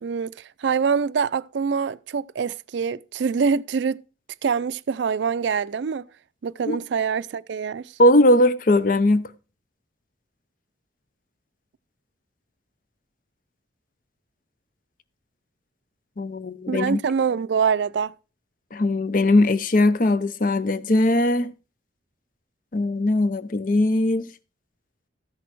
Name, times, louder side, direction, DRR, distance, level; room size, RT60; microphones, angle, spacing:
voice 1, 0.0-4.0 4.4-6.0 6.4-7.8 16.7-18.1, right 6 dB, 80° right, 0.4 m, -25 dB
voice 2, 8.0-9.2 16.2-17.0 18.7-21.5 22.7-24.3, left 1 dB, 50° left, 0.6 m, -19 dB
14.0 x 6.1 x 4.5 m
head